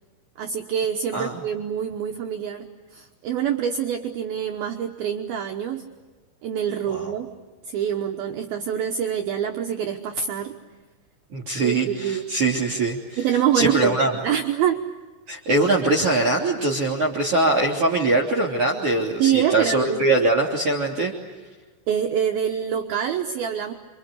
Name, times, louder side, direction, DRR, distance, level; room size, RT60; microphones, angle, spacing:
voice 1, 0.4-5.9 6.4-7.3 7.7-10.5 11.6-12.3 13.2-14.8 19.2-20.1 21.9-23.7, right 9 dB, 90° right, 3 dB, 2.1 m, -25 dB
voice 2, 1.1-1.4 6.9-7.1 11.3-13.2 13.5-14.1 15.3-21.1, right 2 dB, 35° right, -2 dB, 3.4 m, -22 dB
27.0 x 26.5 x 8.3 m, 1.3 s
omnidirectional pair, 5.9 m